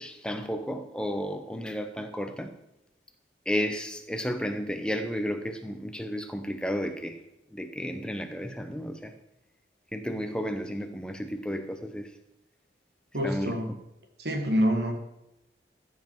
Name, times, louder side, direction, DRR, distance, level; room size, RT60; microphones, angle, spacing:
voice 1, 0.0-2.5 3.5-7.2 7.5-9.1 9.9-12.1 13.2-13.8, equal, 5° left, 7 dB, 0.7 m, -32 dB
voice 2, 13.1-13.7 14.2-14.9, equal, 70° right, 3 dB, 1.6 m, -26 dB
14.5 x 5.4 x 4.6 m, 0.87 s
head